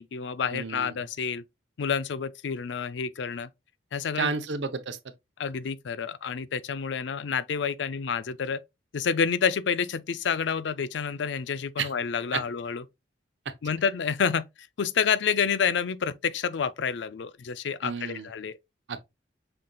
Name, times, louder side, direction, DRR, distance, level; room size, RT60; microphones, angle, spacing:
voice 1, 0.0-1.4 1.8-3.5 3.9-4.3 5.4-8.6 8.9-12.8 13.6-14.5 14.8-18.6, left 6 dB, 75° left, 0.4 m, -28 dB
voice 2, 0.5-1.0 4.2-5.0 11.8-11.9 12.3-12.4 13.5-13.6 17.8-18.3 18.9-19.0, right 5 dB, 75° right, 0.7 m, -31 dB
5.8 x 3.9 x 2.2 m
head